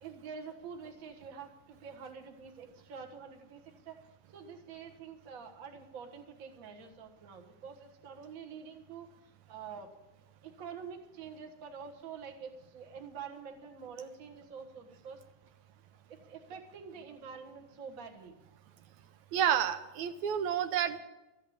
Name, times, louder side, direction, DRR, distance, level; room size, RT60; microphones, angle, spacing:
voice 1, 0.0-4.0 4.3-9.9 10.4-15.2 16.1-18.3, right 6 dB, 40° right, 3 dB, 1.3 m, -47 dB
voice 2, 19.3-21.0, right 9 dB, 80° right, 9 dB, 2.0 m, -30 dB
13.5 x 8.4 x 8.6 m, 1.0 s
omnidirectional pair, 3.5 m